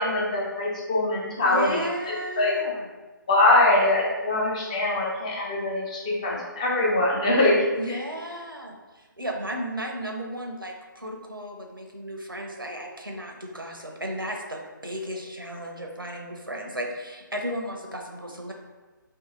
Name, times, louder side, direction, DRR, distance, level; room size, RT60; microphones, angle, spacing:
voice 1, 0.0-2.6 3.3-7.6 7.9-8.0, left 2 dB, 20° left, -3 dB, 0.4 m, -23 dB
voice 2, 1.4-2.9 7.7-18.5, right 1 dB, 90° right, 1 dB, 0.6 m, -34 dB
2.8 x 2.7 x 3.5 m, 1.3 s
figure-of-eight pair, 145°, 11 cm